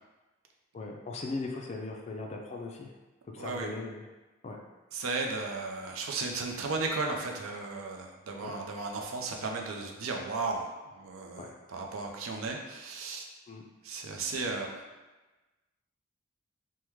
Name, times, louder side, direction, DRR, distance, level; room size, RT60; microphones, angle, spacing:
voice 1, 0.7-2.9 3.3-4.0 4.4-4.6 8.4-8.5 11.4-11.5 13.5-13.6, left 3 dB, 30° left, 1 dB, 0.3 m, -38 dB
voice 2, 3.4-3.7 4.9-13.2 13.8-14.8, right 3 dB, 90° right, 2 dB, 0.5 m, -35 dB
3.4 x 2.1 x 3.0 m, 1.2 s
head